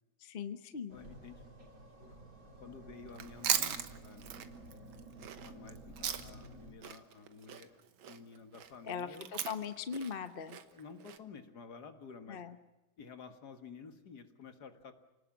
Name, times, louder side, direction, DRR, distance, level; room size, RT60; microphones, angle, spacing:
voice 1, 0.2-1.0 8.8-10.6 12.3-12.5, left 6 dB, 35° left, 10 dB, 0.9 m, -40 dB
voice 2, 0.9-1.4 2.0-2.2 2.6-4.3 5.5-9.4 10.7-12.4 13.0-14.9, left 5 dB, 55° left, 8 dB, 2.2 m, -52 dB
sound 1, 0.9-6.7, right 2 dB, 45° right, 3.8 m, -52 dB
Chewing mastication, 3.1-6.5 6.8-11.2, right 9 dB, 80° right, 2.0 m, -38 dB
28.5 x 19.0 x 7.3 m, 1.0 s
omnidirectional pair, 2.1 m